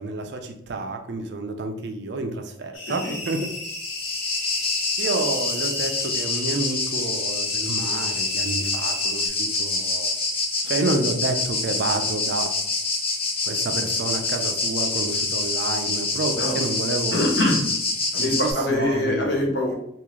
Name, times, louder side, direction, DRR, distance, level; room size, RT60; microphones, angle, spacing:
voice 1, 0.0-3.5 5.0-10.1 10.7-12.5 13.4-17.3 18.2-19.3, right 2 dB, 60° right, 5 dB, 0.5 m, -29 dB
sound 1, 2.7-9.3, left 1 dB, 80° left, 1.2 m, -36 dB
voice 2, 2.9-3.2 16.4-16.6 17.1-17.7 18.1-19.7, left 1 dB, 60° left, 0 dB, 0.9 m, -24 dB
sound 2, 3.5-18.5, left 3 dB, 30° left, 0.5 m, -26 dB
3.7 x 2.5 x 3.1 m, 0.75 s
head